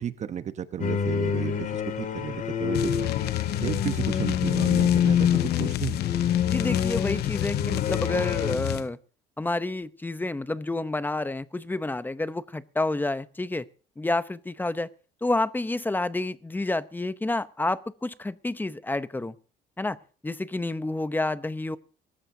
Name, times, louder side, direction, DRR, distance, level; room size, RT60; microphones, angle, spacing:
voice 1, 0.0-3.0 3.6-6.0, right 8 dB, 45° right, 11 dB, 1.0 m, -33 dB
sound 1, 0.8-8.6, left 8 dB, 50° left, 2.5 m, -27 dB
sound 2, 2.7-8.9, left 15 dB, 70° left, 0.7 m, -29 dB
voice 2, 6.5-9.0 9.4-13.6 14.0-14.9 15.2-19.3 19.8-20.0 20.2-21.8, left 2 dB, 10° left, 14 dB, 0.8 m, -29 dB
24.5 x 13.5 x 2.8 m, 0.39 s
cardioid pair, 110°, 17 cm